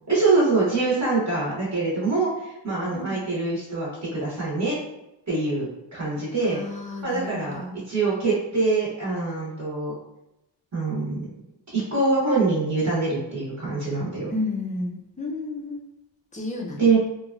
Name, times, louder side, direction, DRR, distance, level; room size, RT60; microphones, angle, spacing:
voice 1, 0.1-4.8 5.3-6.6 7.0-7.6 7.9-9.9 10.7-11.3 11.7-14.3 16.8-17.0, right 3 dB, 35° right, -7 dB, 0.9 m, -24 dB
voice 2, 2.9-3.2 6.5-7.8 14.3-15.9 16.3-17.0, left 2 dB, 20° left, -1 dB, 0.3 m, -32 dB
2.9 x 2.2 x 2.4 m, 0.89 s
wide cardioid pair, 150°, 46 cm